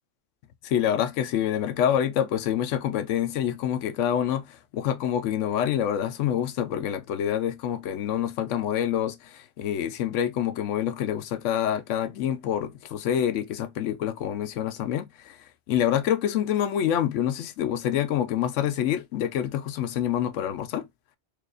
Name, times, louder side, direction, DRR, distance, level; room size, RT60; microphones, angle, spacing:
voice 1, 0.6-4.5 4.7-15.4 15.7-20.8, left 10 dB, 85° left, 0.9 m, -26 dB
4.7 x 2.5 x 2.4 m
omnidirectional pair, 1.2 m